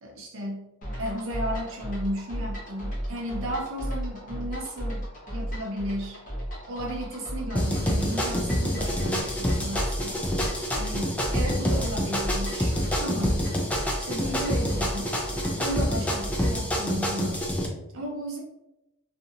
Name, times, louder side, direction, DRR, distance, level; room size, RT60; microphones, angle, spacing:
voice 1, 0.0-0.7 1.0-5.0 5.3-6.2 6.7-10.3 10.8-13.4 14.0-15.2 15.6-17.4 17.9-18.4, equal, 65° right, -1 dB, 0.7 m, -34 dB
sound 1, 0.8-16.7, equal, 40° left, 0.9 m, -35 dB
sound 2, 7.6-17.7, equal, 5° left, 0.4 m, -27 dB
2.7 x 2.6 x 2.5 m, 0.92 s
head